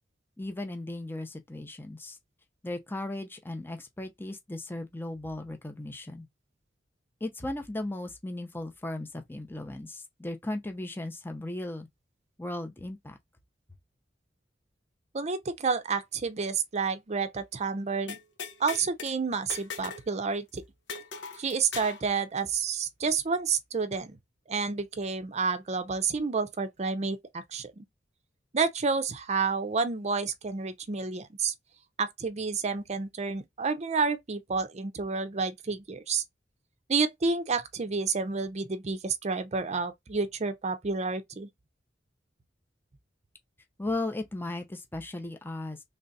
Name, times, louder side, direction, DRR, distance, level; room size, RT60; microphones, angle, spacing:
voice 1, 0.4-2.2 2.6-6.3 7.2-11.9 12.4-13.2 43.8-45.8, left 2 dB, 10° left, 0.6 m, -36 dB
voice 2, 15.1-18.2 18.6-20.6 21.4-24.2 24.5-27.8 28.5-31.5 32.0-36.2 36.9-41.5, right 4 dB, 40° right, 0.6 m, -30 dB
sound 1, 18.1-19.1 19.5-20.1 20.3-20.4 20.9-22.0, left 5 dB, 70° left, 0.9 m, -39 dB
3.3 x 2.5 x 4.0 m
head